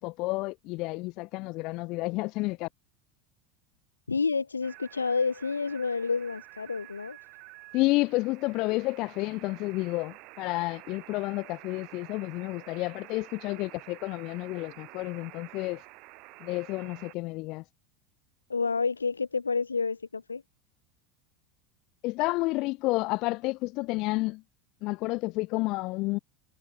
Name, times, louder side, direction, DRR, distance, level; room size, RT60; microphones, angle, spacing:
voice 1, 0.0-2.7 7.7-15.8 16.4-17.6 22.0-24.4 24.8-26.2, left 22 dB, 50° left, 1.3 m, -30 dB
voice 2, 4.1-7.2 18.5-20.4, left 4 dB, 85° left, 2.6 m, -29 dB
sound 1, 4.6-17.1, right 25 dB, 55° right, 5.4 m, -50 dB
figure-of-eight pair, 80°, 0 cm